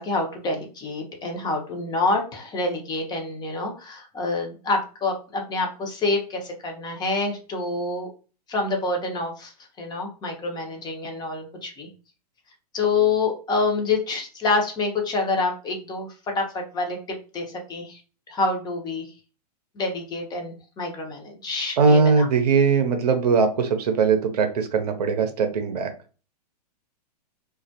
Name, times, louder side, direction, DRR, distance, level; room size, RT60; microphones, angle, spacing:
voice 1, 0.0-8.1 8.5-9.5 9.8-11.9 12.7-17.0 17.3-18.0 18.3-19.1 19.8-22.3, left 3 dB, 20° left, 2 dB, 0.6 m, -27 dB
voice 2, 21.8-25.9, right 5 dB, 75° right, 6 dB, 0.6 m, -20 dB
2.2 x 2.1 x 2.7 m, 0.36 s
hypercardioid pair, 115°, 21 cm